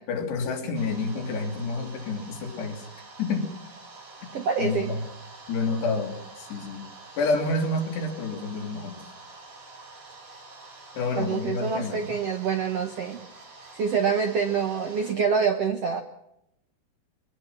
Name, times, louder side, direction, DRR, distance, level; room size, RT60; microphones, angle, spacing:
voice 1, 0.1-2.9 3.2-3.5 4.6-5.0 5.5-6.9 7.2-9.0 10.9-12.2, left 3 dB, 85° left, 2 dB, 5.2 m, -29 dB
sound 1, 0.7-15.2, right 3 dB, 90° right, 9.6 m, -47 dB
voice 2, 4.3-4.9 11.2-13.2 13.7-16.0, right 6 dB, 65° right, 5 dB, 1.5 m, -26 dB
23.5 x 19.5 x 6.0 m, 0.80 s
omnidirectional pair, 4.7 m